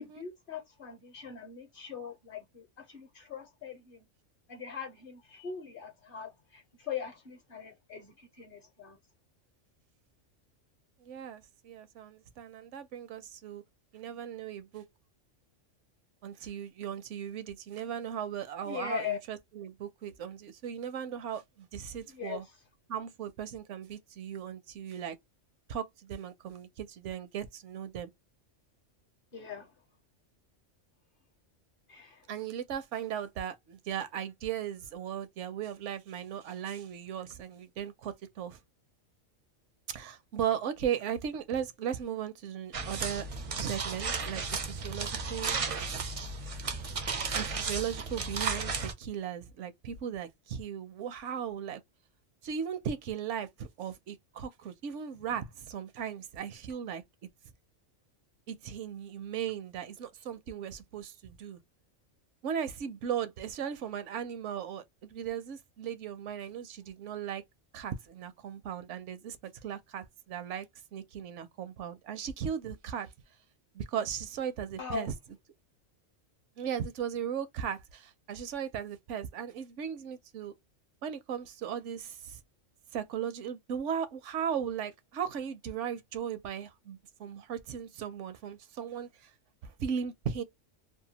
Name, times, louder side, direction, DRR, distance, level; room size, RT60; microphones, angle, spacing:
voice 1, 0.0-4.1 4.5-9.0 18.7-19.2 22.1-22.4 29.3-29.7 31.9-32.2 74.8-75.1, left 7 dB, 50° left, 0.8 m, -40 dB
voice 2, 11.0-13.6 13.9-14.8 16.2-22.4 22.9-25.2 25.7-28.1 32.3-38.6 39.9-43.3 43.5-45.6 47.3-51.8 52.4-57.0 58.5-61.6 62.4-64.8 65.1-67.4 67.7-69.4 69.6-70.7 70.9-73.1 73.7-75.1 76.6-80.5 81.0-82.4 82.9-89.3 89.6-90.4, right 8 dB, 75° right, 0.9 m, -37 dB
sound 1, 42.7-48.9, right 4 dB, 55° right, 0.3 m, -34 dB
2.7 x 2.2 x 2.7 m
omnidirectional pair, 1.3 m